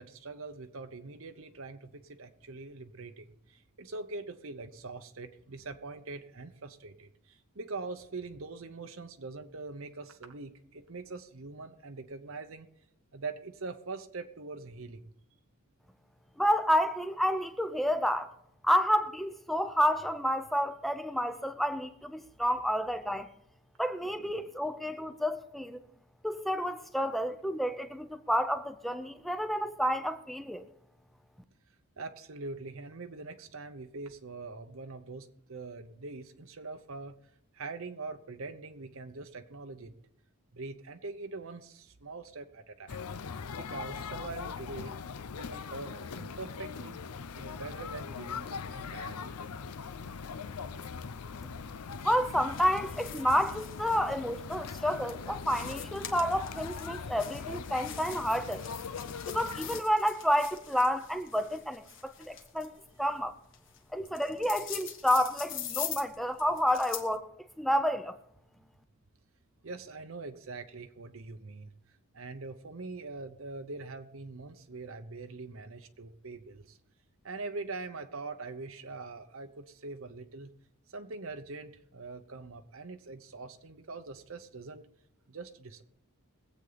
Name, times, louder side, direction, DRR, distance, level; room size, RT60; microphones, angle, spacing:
voice 1, 0.0-12.7 13.1-15.1 24.3-24.5 32.0-37.1 37.5-39.9 40.5-43.1 43.6-44.9 45.4-47.0 47.4-49.4 69.6-71.7 72.1-76.8 77.2-80.5 80.9-84.9 85.3-85.8, right 3 dB, 65° right, 0.9 m, -43 dB
voice 2, 16.4-18.3 18.6-23.3 23.8-25.8 26.2-30.6 52.0-58.7 59.3-62.7 63.0-63.3 63.9-67.3 67.6-68.2, equal, ahead, 0.7 m, -30 dB
sound 1, 42.9-59.8, left 5 dB, 90° left, 0.6 m, -41 dB
sound 2, 51.9-67.2, left 9 dB, 55° left, 1.5 m, -44 dB
21.5 x 8.3 x 4.1 m
head